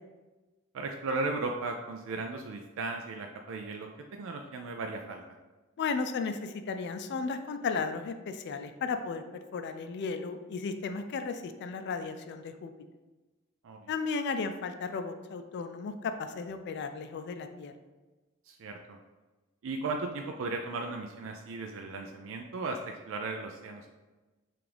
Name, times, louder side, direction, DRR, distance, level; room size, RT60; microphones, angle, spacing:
voice 1, 0.7-5.2 13.6-13.9 18.5-19.0 19.6-24.0, right 3 dB, 65° right, 3 dB, 0.4 m, -36 dB
voice 2, 5.8-9.2 9.5-12.7 13.9-17.7, left 4 dB, 55° left, 8 dB, 0.3 m, -34 dB
5.8 x 2.5 x 3.4 m, 1.2 s
head